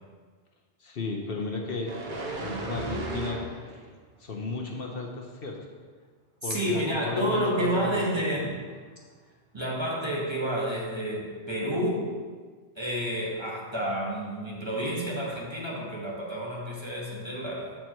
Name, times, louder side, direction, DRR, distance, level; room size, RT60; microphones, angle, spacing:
voice 1, 0.8-2.0 2.3-3.4 3.9-5.6 6.4-8.3, left 4 dB, 60° left, 0 dB, 1.0 m, -34 dB
sound 1, 1.9-3.9 4.3-4.5, right 2 dB, 50° right, 0.8 m, -35 dB
voice 2, 6.4-8.5 9.5-12.1 12.8-17.8, equal, 25° right, -4 dB, 1.1 m, -30 dB
7.6 x 4.6 x 4.4 m, 1.5 s
omnidirectional pair, 1.2 m